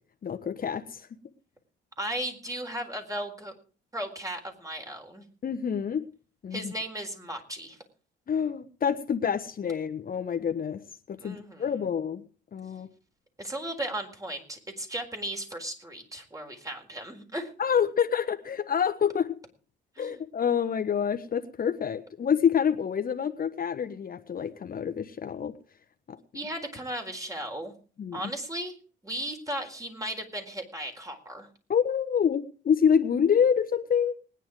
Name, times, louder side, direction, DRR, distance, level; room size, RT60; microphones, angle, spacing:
voice 1, 0.2-1.1 5.4-6.0 6.4-6.7 8.3-10.8 11.1-12.2 12.5-12.9 17.6-19.3 20.0-25.5 26.1-26.2 28.0-28.2 31.7-34.1, left 7 dB, 45° left, 8 dB, 1.3 m, -27 dB
voice 2, 2.0-3.5 3.9-5.3 6.5-7.8 11.2-11.7 13.4-17.5 20.0-20.2 26.3-27.7 28.1-28.7 29.0-31.5, right 1 dB, 15° right, 4 dB, 4.3 m, -36 dB
20.0 x 10.0 x 4.9 m, 0.39 s
cardioid pair, 90°, 20 cm